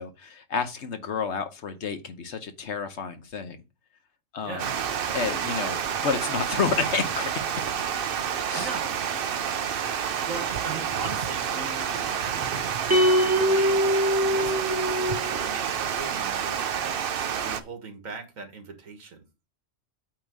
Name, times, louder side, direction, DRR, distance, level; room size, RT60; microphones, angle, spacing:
voice 1, 0.0-3.6 4.3-4.7 5.1-7.5 8.5-8.7, left 5 dB, 60° left, 1.2 m, -30 dB
Water, 4.6-17.6, right 8 dB, 55° right, 0.7 m, -29 dB
voice 2, 8.6-9.1 10.1-13.9 14.2-16.7 17.3-19.2, right 4 dB, 85° right, 1.9 m, -40 dB
sound 1, 12.9-15.4, equal, 15° right, 0.5 m, -23 dB
8.8 x 2.9 x 6.0 m
omnidirectional pair, 1.4 m